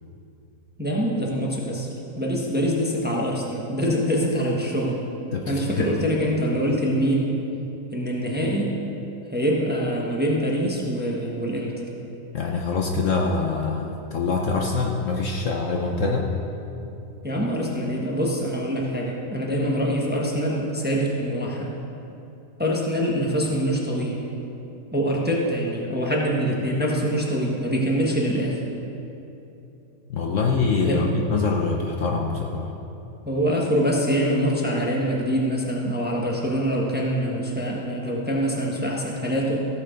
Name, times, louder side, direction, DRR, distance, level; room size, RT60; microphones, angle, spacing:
voice 1, 0.8-1.9 2.2-5.0 5.5-7.4 7.9-8.7 9.3-11.8 17.2-21.8 22.6-24.2 24.9-28.6 30.8-31.1 33.3-39.6, equal, 5° right, -3 dB, 1.1 m, -24 dB
voice 2, 5.3-5.9 12.3-16.3 30.1-32.7, left 4 dB, 60° left, 1 dB, 1.1 m, -24 dB
15.0 x 7.1 x 5.1 m, 2.9 s
omnidirectional pair, 1.7 m